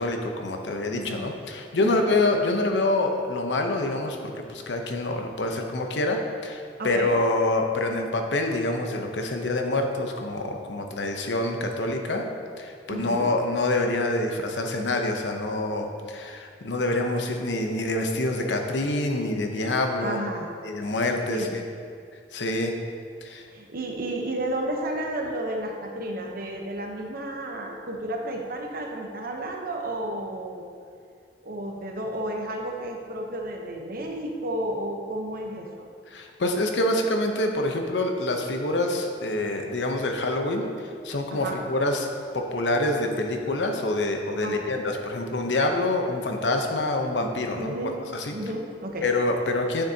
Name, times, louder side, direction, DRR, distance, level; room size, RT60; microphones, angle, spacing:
voice 1, 0.0-12.3 12.6-20.2 20.6-21.6 22.3-22.8 23.2-23.5 36.1-47.8 48.1-48.4 49.0-49.8, left 2 dB, 85° left, 3 dB, 0.8 m, -26 dB
voice 2, 0.9-1.3 1.7-2.1 6.8-7.1 12.9-13.3 20.0-20.5 21.3-21.5 23.5-30.6 31.4-35.9 41.3-41.6 44.4-44.6 47.6-47.9 48.3-49.1, right 1 dB, 55° right, 1 dB, 0.9 m, -32 dB
9.6 x 6.7 x 2.8 m, 2.3 s
head